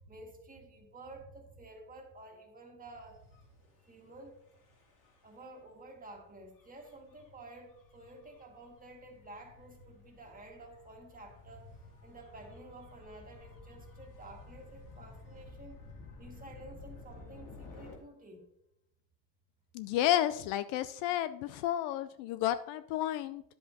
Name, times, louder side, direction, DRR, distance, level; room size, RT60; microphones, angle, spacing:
voice 1, 0.0-3.3 3.8-4.4 5.2-15.8 16.2-18.5, right 2 dB, 15° right, 2 dB, 1.8 m, -51 dB
Gull seagull / Waves surf / Siren, 3.2-17.9, left 3 dB, 40° left, 2.5 m, -54 dB
voice 2, 19.7-23.4, left 12 dB, 60° left, 14 dB, 0.5 m, -31 dB
10.0 x 7.8 x 2.7 m, 0.78 s
supercardioid pair, 115°, 50 cm